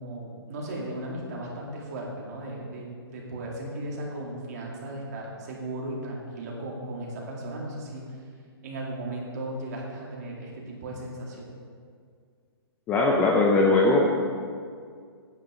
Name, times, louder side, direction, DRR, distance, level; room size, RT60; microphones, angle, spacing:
voice 1, 0.0-8.0 8.6-11.4, right 1 dB, 40° right, -2 dB, 2.3 m, -36 dB
voice 2, 12.9-14.1, left 2 dB, 10° left, 0 dB, 0.5 m, -20 dB
9.5 x 8.4 x 4.9 m, 2.1 s
hypercardioid pair, 165°, 14 cm